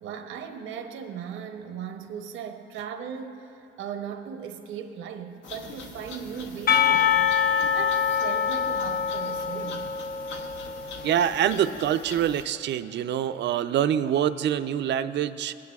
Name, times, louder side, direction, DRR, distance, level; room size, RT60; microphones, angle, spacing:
voice 1, 0.0-7.4 7.7-9.9, right 7 dB, 85° right, 6 dB, 0.8 m, -38 dB
sound 1, 5.4-12.4, left 4 dB, 70° left, 0.9 m, -43 dB
Percussion, 6.7-11.5, left 7 dB, 50° left, 0.6 m, -25 dB
voice 2, 11.0-15.5, right 10 dB, 60° right, 12 dB, 0.4 m, -25 dB
18.0 x 9.7 x 2.3 m, 2.7 s
cardioid pair, 90°, 20 cm